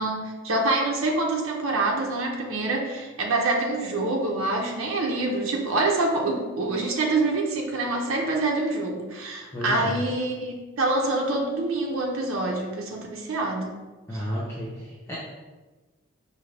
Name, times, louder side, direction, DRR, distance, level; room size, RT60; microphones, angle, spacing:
voice 1, 0.0-13.8 14.1-14.2, right 2 dB, 85° right, 0 dB, 0.7 m, -26 dB
voice 2, 9.5-10.0 14.1-15.2, equal, 15° left, -8 dB, 0.6 m, -32 dB
4.9 x 2.7 x 3.3 m, 1.2 s
head